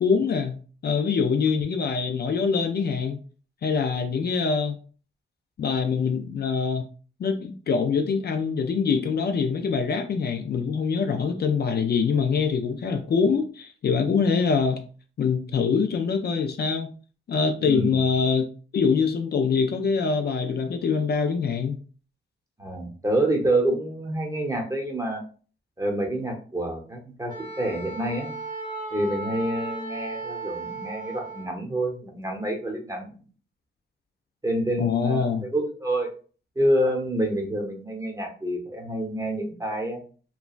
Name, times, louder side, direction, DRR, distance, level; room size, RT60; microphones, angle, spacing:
voice 1, 0.0-3.2 3.6-4.8 5.6-6.9 7.2-14.8 15.2-16.9 17.3-18.5 18.7-21.8 34.8-35.5, left 5 dB, 55° left, 6 dB, 0.4 m, -24 dB
voice 2, 17.6-18.0 22.6-25.2 25.8-28.3 28.9-33.2 34.4-36.1 36.6-40.0, right 1 dB, 15° right, 2 dB, 0.8 m, -27 dB
Wind instrument woodwind instrument, 27.3-31.6, right 3 dB, 40° right, 1.0 m, -35 dB
3.0 x 2.1 x 2.4 m, 0.40 s
cardioid pair, 60°, 20 cm